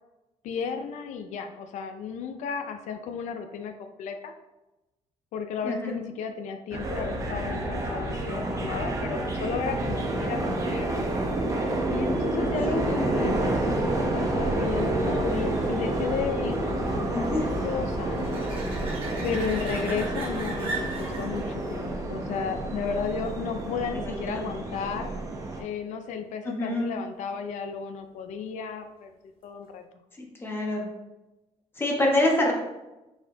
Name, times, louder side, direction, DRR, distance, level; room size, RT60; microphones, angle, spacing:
voice 1, 0.4-4.3 5.3-10.9 11.9-18.5 19.2-25.1 25.6-29.1 29.4-29.9, left 6 dB, 80° left, 7 dB, 0.4 m, -33 dB
voice 2, 5.6-6.0 10.4-10.5 12.9-13.0 17.1-17.5 23.9-24.4 26.4-26.9 30.2-30.8 31.8-32.5, left 1 dB, 20° left, -1 dB, 0.9 m, -26 dB
sound 1, 6.7-25.6, right 1 dB, 25° right, 0.7 m, -29 dB
sound 2, 13.3-23.8 29.4-29.5, right 3 dB, 45° right, 1.5 m, -41 dB
4.6 x 4.3 x 2.7 m, 1.0 s
cardioid pair, 150°, 12 cm